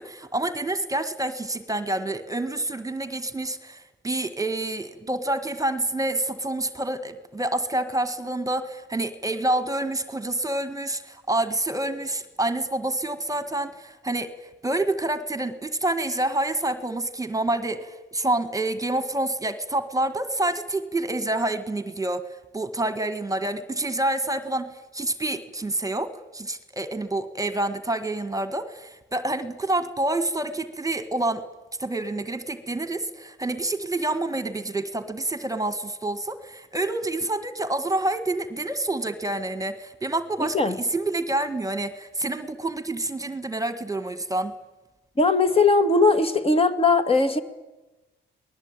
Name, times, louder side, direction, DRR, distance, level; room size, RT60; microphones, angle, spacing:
voice 1, 0.0-22.2 22.5-31.4 31.8-44.5, right 2 dB, 15° right, 11 dB, 1.7 m, -28 dB
voice 2, 40.4-40.8 45.2-47.4, left 3 dB, 30° left, 10 dB, 2.2 m, -19 dB
28.0 x 20.0 x 9.0 m, 1.1 s
cardioid pair, 90°, 20 cm